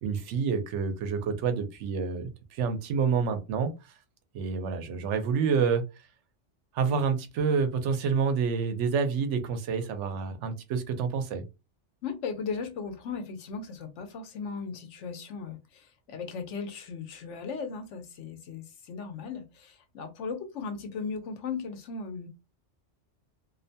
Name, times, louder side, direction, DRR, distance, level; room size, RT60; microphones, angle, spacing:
voice 1, 0.0-3.7 4.3-5.8 6.7-11.4, right 5 dB, 85° right, 0.9 m, -28 dB
voice 2, 12.0-22.3, left 5 dB, 85° left, 1.0 m, -37 dB
2.6 x 2.1 x 2.6 m
omnidirectional pair, 1.2 m